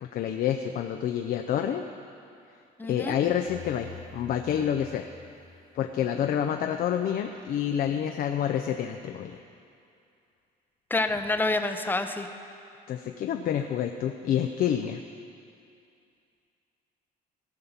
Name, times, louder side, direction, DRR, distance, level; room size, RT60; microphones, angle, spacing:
voice 1, 0.0-1.8 2.8-5.1 5.7-9.4 12.9-15.0, left 9 dB, 60° left, 5 dB, 0.5 m, -28 dB
voice 2, 2.8-3.2 10.9-12.3, left 2 dB, 10° left, 7 dB, 0.7 m, -27 dB
sound 1, 3.3-6.2, left 7 dB, 35° left, 0.9 m, -47 dB
16.0 x 5.5 x 7.2 m, 2.5 s
cardioid pair, 110°, 17 cm